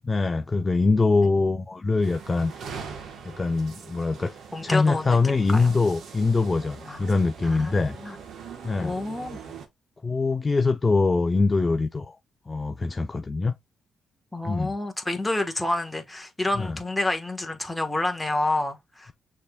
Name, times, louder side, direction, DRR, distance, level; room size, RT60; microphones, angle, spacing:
voice 1, 0.1-2.5 3.3-8.0 8.6-8.9 10.0-12.2 12.5-13.5 14.4-14.7 16.6-16.8, left 3 dB, 25° left, 0.5 m, -23 dB
sound 1, 2.0-9.7, right 6 dB, 70° right, 1.3 m, -42 dB
voice 2, 4.5-5.2 5.5-5.8 6.8-7.1 7.4-8.2 8.8-9.5 14.3-19.1, left 2 dB, 10° left, 1.4 m, -29 dB
6.3 x 3.4 x 2.4 m
cardioid pair, 90°, 0 cm